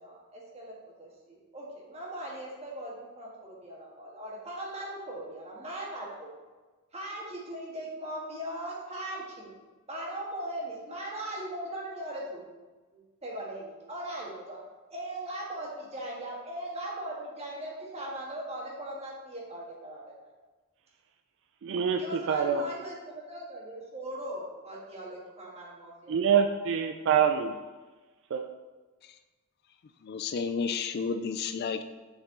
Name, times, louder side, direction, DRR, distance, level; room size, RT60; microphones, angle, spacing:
voice 1, 0.0-0.7 1.0-6.3 6.9-9.5 9.9-12.6 12.9-14.6 14.9-20.1 22.0-26.2, right 1 dB, 30° right, -3 dB, 1.5 m, -39 dB
voice 2, 21.6-22.6 26.1-27.5 28.3-28.5, right 7 dB, 55° right, 6 dB, 0.3 m, -25 dB
voice 3, 30.0-31.8, left 5 dB, 45° left, 10 dB, 0.3 m, -31 dB
6.8 x 4.5 x 3.7 m, 1.3 s
head